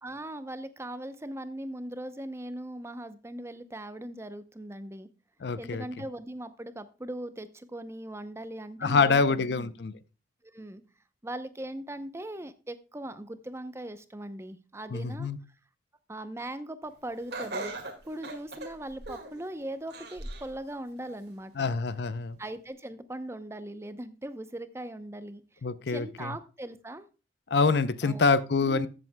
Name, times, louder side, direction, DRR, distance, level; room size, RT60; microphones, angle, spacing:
voice 1, 0.0-5.1 5.6-9.7 10.4-10.8 11.2-15.3 16.1-17.7 18.0-21.7 22.4-27.1 28.0-28.2 28.6-28.9, right 1 dB, 15° right, 0.6 m, -40 dB
voice 2, 5.4-5.8 8.8-9.9 14.9-15.4 21.6-22.4 25.6-26.3 27.5-28.9, left 4 dB, 65° left, 0.5 m, -26 dB
Laughter, 17.3-19.4 19.9-20.5 21.0-21.1 22.1-22.2, right 2 dB, 60° right, 1.9 m, -38 dB
14.5 x 7.7 x 2.2 m
head